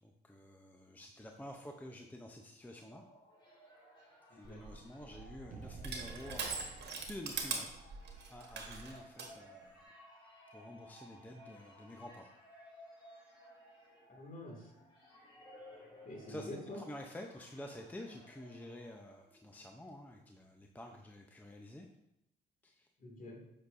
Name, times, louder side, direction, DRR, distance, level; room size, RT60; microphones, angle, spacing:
voice 1, 0.0-3.0 4.3-6.7 7.0-7.8 8.3-9.9 10.5-12.3 16.3-16.5 16.7-21.9 22.6-22.9, left 1 dB, 10° left, 3 dB, 0.6 m, -49 dB
sound 1, 2.6-19.6, left 1 dB, 25° left, 2.7 m, -58 dB
voice 2, 4.3-4.6 14.1-14.7 16.0-16.8 23.0-23.4, left 1 dB, 45° left, 0 dB, 2.2 m, -47 dB
Crushing, 4.4-9.3, right 4 dB, 60° right, 1.4 m, -42 dB
sound 2, 5.5-8.7, right 5 dB, 40° right, 0.5 m, -55 dB
7.9 x 6.3 x 2.6 m, 0.83 s
cardioid pair, 90°, 20 cm